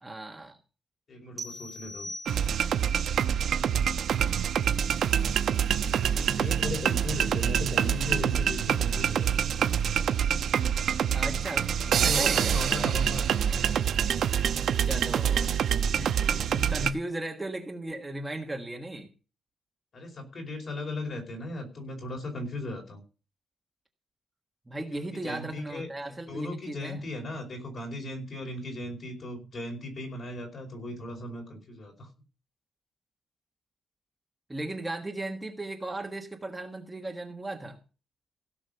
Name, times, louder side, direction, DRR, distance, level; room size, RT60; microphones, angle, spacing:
voice 1, 0.0-0.6 11.1-11.7 12.0-12.6 14.8-15.5 15.9-16.2 16.5-19.1 24.7-27.1 34.5-37.8, right 1 dB, 10° right, 2 dB, 1.5 m, -36 dB
voice 2, 1.1-2.1 3.3-3.8 6.0-9.7 11.8-13.4 16.2-16.5 19.9-23.0 24.9-25.9 26.3-32.1, left 2 dB, 40° left, 2 dB, 5.0 m, -37 dB
sound 1, 1.4-2.9, equal, 25° right, 1.8 m, -41 dB
sound 2, 2.2-16.9, right 8 dB, 65° right, 0.9 m, -26 dB
16.5 x 6.2 x 7.0 m, 0.35 s
wide cardioid pair, 170°, 0 cm